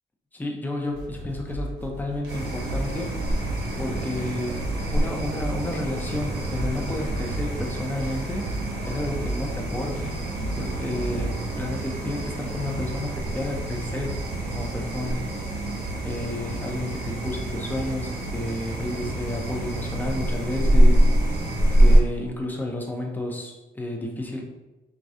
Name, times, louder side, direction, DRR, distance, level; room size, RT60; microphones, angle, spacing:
voice 1, 0.3-3.1 3.8-8.4 8.8-10.1 10.5-14.2 14.5-15.2 16.0-21.0 21.8-24.4, left 1 dB, 10° left, 0 dB, 0.7 m, -31 dB
sound 1, 0.9-11.3, right 1 dB, 85° right, 0.9 m, -35 dB
sound 2, 2.3-22.0, right 1 dB, 55° right, 1.1 m, -25 dB
4.8 x 2.3 x 2.7 m, 1.1 s
cardioid pair, 90°, 20 cm